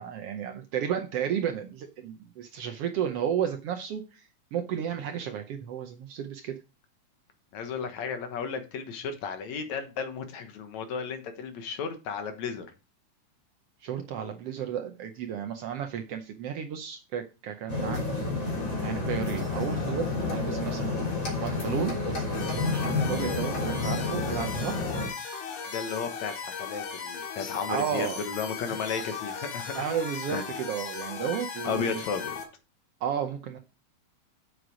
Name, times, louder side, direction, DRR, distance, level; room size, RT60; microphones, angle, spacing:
voice 1, 0.0-6.6 13.8-21.0 21.4-24.8 27.7-28.2 28.7-29.0 29.8-32.0 33.0-33.6, right 8 dB, 70° right, 6 dB, 1.5 m, -33 dB
voice 2, 7.5-12.7 25.7-29.8 30.3-30.4 31.7-32.3, left 6 dB, 70° left, 7 dB, 2.5 m, -34 dB
sound 1, 17.7-25.1, left 3 dB, 40° left, 4.0 m, -30 dB
sound 2, 22.3-32.4, left 5 dB, 90° left, 3.1 m, -37 dB
7.8 x 6.6 x 4.9 m, 0.31 s
omnidirectional pair, 3.4 m